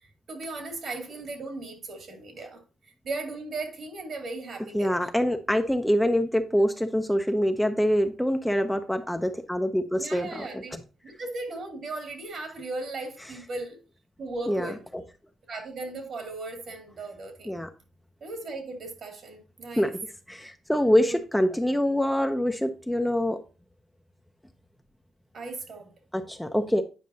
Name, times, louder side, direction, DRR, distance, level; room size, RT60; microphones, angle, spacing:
voice 1, 0.0-2.6 3.0-5.1 10.0-10.8 11.0-13.8 14.2-14.8 15.5-17.6 18.2-19.9 21.1-21.2 25.3-25.9, right 2 dB, 55° right, 2.4 m, -37 dB
voice 2, 4.7-10.5 14.5-14.7 17.5-17.7 19.8-19.9 20.3-23.4 26.1-26.8, equal, 5° left, 0.6 m, -25 dB
9.4 x 5.2 x 2.7 m
cardioid pair, 90°, 0 cm